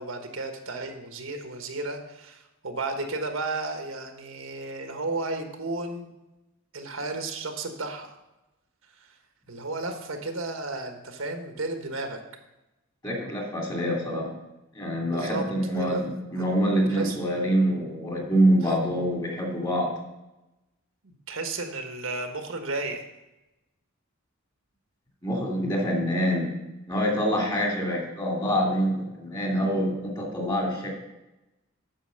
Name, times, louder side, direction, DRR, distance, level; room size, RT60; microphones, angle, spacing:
voice 1, 0.0-6.1 6.7-8.2 9.0-9.1 9.5-12.2 15.0-16.0 16.4-16.5 16.9-17.2 18.6-18.8 21.0-23.0 27.2-27.3, right 2 dB, 80° right, 5 dB, 1.3 m, -33 dB
voice 2, 13.0-14.3 14.7-19.9 25.2-26.5 26.9-30.9, equal, 20° left, -1 dB, 2.7 m, -25 dB
9.0 x 6.2 x 6.4 m, 0.98 s
head